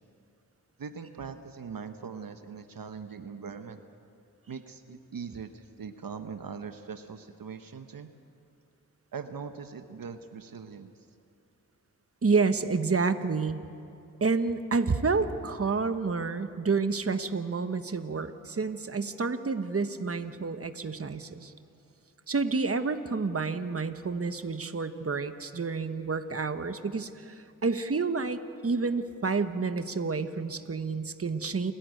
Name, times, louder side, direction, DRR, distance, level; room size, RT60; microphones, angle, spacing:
voice 1, 0.8-3.8 4.5-8.1 9.1-10.9, right 6 dB, 75° right, 8 dB, 0.9 m, -41 dB
voice 2, 12.2-13.6 14.2-21.5 22.3-31.7, right 4 dB, 40° right, 10 dB, 1.1 m, -29 dB
29.0 x 11.5 x 9.2 m, 2.6 s
cardioid pair, 55°, 34 cm